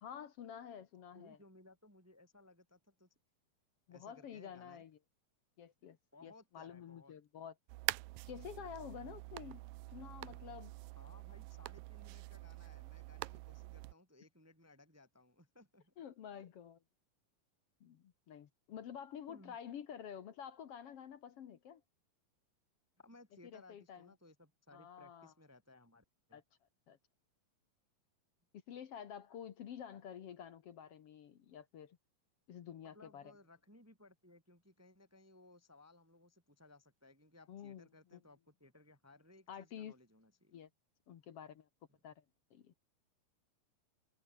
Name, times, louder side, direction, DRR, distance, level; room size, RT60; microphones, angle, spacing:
voice 1, 0.0-1.4 3.9-5.0 5.6-6.0 6.2-7.5 8.3-9.6 9.9-10.7 16.0-16.8 17.8-21.8 23.4-24.1 24.7-25.3 26.3-26.4 26.9-27.0 28.7-32.0 32.5-33.2 37.5-38.2 39.5-39.9 40.5-40.7 41.1-41.7 42.0-42.2 42.5-42.7, left 8 dB, 60° left, 1.7 m, -49 dB
voice 2, 1.1-3.1 3.9-4.8 6.1-7.2 11.0-15.9 16.4-16.5 19.3-19.6 23.0-26.4 32.8-40.5, left 2 dB, 5° right, 2.4 m, -62 dB
sound 1, 7.7-13.9, right 21 dB, 80° right, 2.2 m, -45 dB
omnidirectional pair, 4.2 m